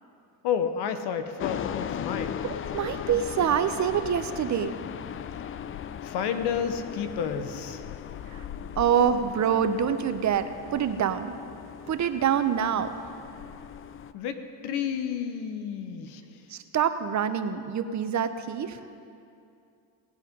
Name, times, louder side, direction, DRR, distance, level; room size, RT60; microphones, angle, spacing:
voice 1, 0.4-2.4 6.0-7.8 14.1-14.4 14.6-16.2, left 7 dB, 65° left, 9 dB, 1.1 m, -30 dB
sound 1, 1.4-14.1, left 9 dB, 30° left, 0.4 m, -38 dB
voice 2, 2.7-4.7 8.3-8.4 8.8-11.3 11.9-12.9 16.5-18.8, right 8 dB, 40° right, 10 dB, 0.8 m, -26 dB
18.0 x 8.2 x 5.4 m, 2.5 s
supercardioid pair, 80°, 43 cm